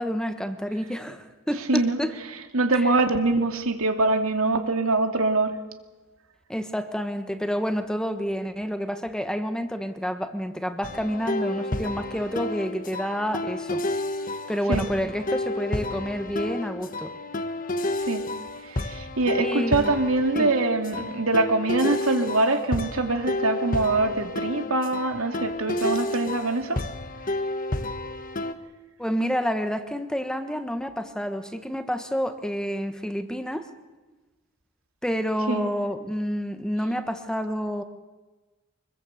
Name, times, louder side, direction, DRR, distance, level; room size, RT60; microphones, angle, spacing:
voice 1, 0.0-2.1 6.5-13.8 14.5-17.1 19.4-19.9 20.3-20.5 29.0-33.7 35.0-37.8, equal, 5° left, 8 dB, 1.4 m, -29 dB
voice 2, 2.5-5.6 14.7-14.9 18.0-18.2 18.6-26.8 35.5-35.7, right 2 dB, 85° right, 6 dB, 2.6 m, -24 dB
sound 1, 10.8-28.5, left 2 dB, 40° left, 1.4 m, -31 dB
25.5 x 21.5 x 8.1 m, 1.2 s
head